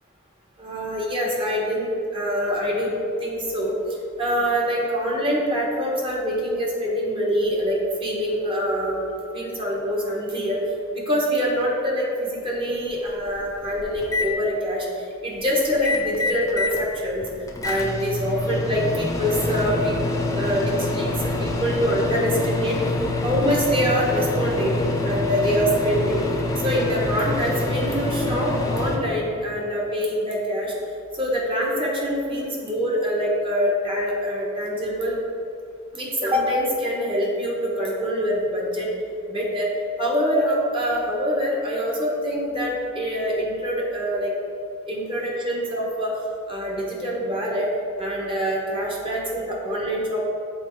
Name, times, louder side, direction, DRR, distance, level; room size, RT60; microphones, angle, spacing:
voice 1, 0.6-2.9 3.2-3.7 4.2-9.1 9.3-10.6 10.9-17.3 17.6-20.0 20.3-21.1 21.4-22.8 23.2-24.8 25.0-26.2 26.6-30.7 31.1-35.2 35.9-38.9 39.3-39.7 40.0-44.3 44.9-46.1 46.5-47.7 48.0-50.2, equal, 25° right, -3 dB, 1.3 m, -25 dB
Microwave oven, 12.7-12.8 13.3-14.3 15.7-16.8 17.2-29.0, left 2 dB, 15° left, 0.7 m, -26 dB
7.1 x 4.1 x 4.6 m, 2.5 s
head